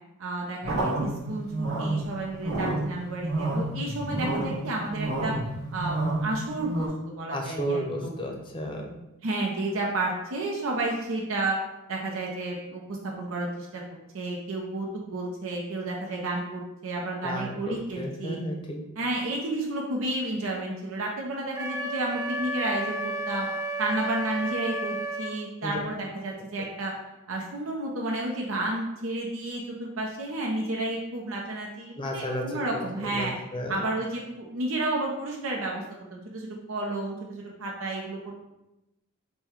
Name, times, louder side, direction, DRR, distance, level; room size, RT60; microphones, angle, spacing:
voice 1, 0.2-5.3 5.7-8.2 9.2-11.6 11.9-18.4 19.0-23.5 23.8-26.9 27.3-33.3 33.7-35.8 36.1-38.4, right 2 dB, 75° right, -2 dB, 0.7 m, -31 dB
sound 1, 0.6-6.9, right 2 dB, 50° right, 1.3 m, -30 dB
voice 2, 7.3-8.9 17.2-18.8 25.6-25.8 26.6-26.7 32.0-33.8, equal, 25° left, 2 dB, 0.7 m, -33 dB
Wind instrument woodwind instrument, 21.5-25.3, right 1 dB, 15° right, 0.6 m, -32 dB
5.3 x 2.2 x 4.4 m, 0.94 s
head